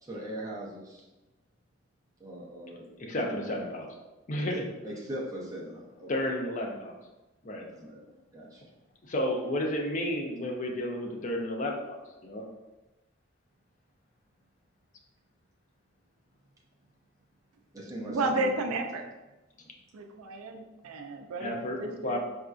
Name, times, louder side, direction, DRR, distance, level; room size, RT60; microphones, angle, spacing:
voice 1, 0.0-1.1 2.2-2.9 3.2-3.3 4.8-6.1 7.6-8.6 17.7-18.8, right 1 dB, 15° right, -5 dB, 0.5 m, -40 dB
voice 2, 3.0-3.9 4.3-4.7 6.1-7.0 7.4-7.6 9.0-12.4 21.4-22.2, left 1 dB, 35° left, 1 dB, 0.4 m, -32 dB
voice 3, 18.0-19.0 19.9-22.2, right 2 dB, 90° right, 4 dB, 0.4 m, -32 dB
4.2 x 2.5 x 2.3 m, 1.1 s
head